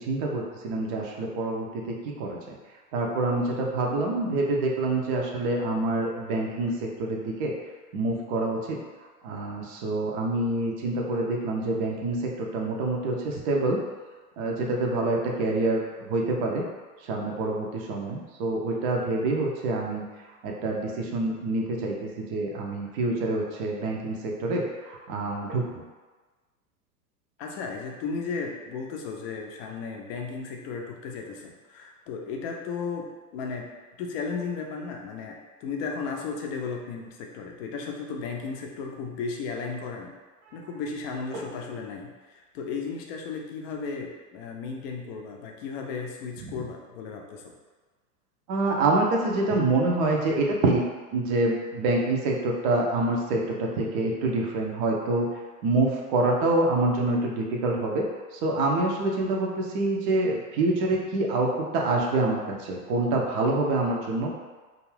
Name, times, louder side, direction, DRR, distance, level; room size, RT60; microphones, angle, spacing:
voice 1, 0.1-2.4 2.9-7.5 7.9-8.8 9.2-13.8 14.4-15.8 16.1-16.6 17.0-20.0 20.4-25.7 46.4-46.5 48.5-50.8 51.1-55.3 55.6-58.0 58.4-64.3, right 2 dB, 35° right, -1 dB, 0.5 m, -26 dB
voice 2, 27.4-33.1 33.3-33.7 34.0-40.1 40.5-47.4, left 5 dB, 40° left, 1 dB, 0.5 m, -35 dB
2.5 x 2.4 x 3.1 m, 1.3 s
figure-of-eight pair, 90°, 46 cm